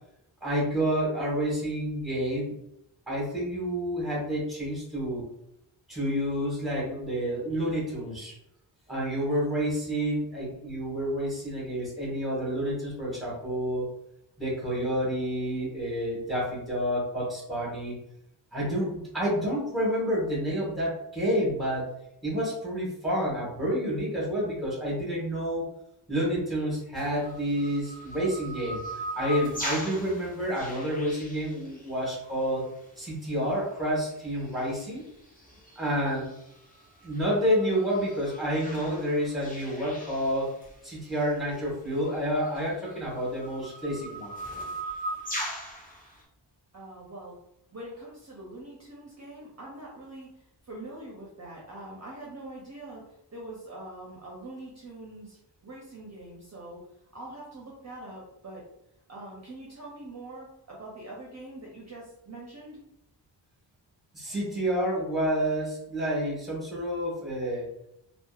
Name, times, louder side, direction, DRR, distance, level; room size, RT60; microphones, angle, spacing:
voice 1, 0.4-2.5 3.1-5.2 5.9-8.3 8.9-13.9 14.4-18.0 18.5-21.9 22.2-25.7 26.1-28.8 29.1-32.6 33.0-35.1 35.8-36.3 37.0-40.6 40.8-44.3 64.1-67.7, equal, ahead, -5 dB, 1.1 m, -29 dB
sound 1, 26.9-32.2 33.6-33.7 34.2-34.8 35.2-40.7 41.1-41.2 41.9-46.2, equal, 20° left, 0.6 m, -39 dB
voice 2, 46.7-47.4 47.7-50.3 50.6-55.4 55.6-56.8 57.1-58.6 59.1-62.8, right 1 dB, 35° right, -4 dB, 0.6 m, -43 dB
2.7 x 2.1 x 2.3 m, 0.80 s
wide cardioid pair, 110°, 45 cm